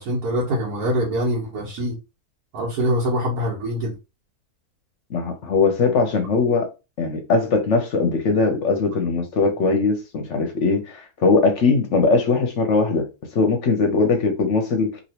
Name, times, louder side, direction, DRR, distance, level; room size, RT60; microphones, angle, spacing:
voice 1, 0.0-2.0 2.5-3.9, equal, 75° right, 1.5 m, -24 dB
voice 2, 5.1-6.7 7.0-13.0 13.3-14.9, left 4 dB, 60° left, 0.8 m, -20 dB
3.0 x 2.8 x 2.8 m
omnidirectional pair, 1.6 m